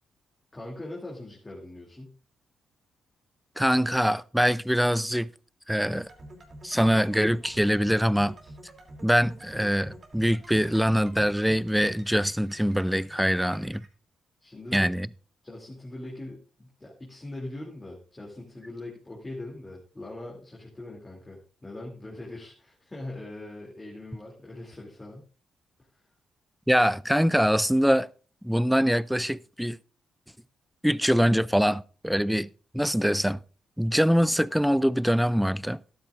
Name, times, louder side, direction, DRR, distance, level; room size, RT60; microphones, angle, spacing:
voice 1, 0.5-2.2 14.4-14.9 15.4-25.2 25.9-26.0, left 2 dB, 15° left, 2.8 m, -41 dB
voice 2, 3.6-5.3 5.7-6.1 6.6-8.4 9.0-13.8 14.7-15.1 26.7-28.1 28.4-29.8 30.8-32.5 32.7-33.4 33.8-35.8, equal, ahead, 0.4 m, -23 dB
sound 1, 5.9-13.9, right 1 dB, 40° right, 2.9 m, -48 dB
13.0 x 12.0 x 2.5 m
cardioid pair, 110°, 0 cm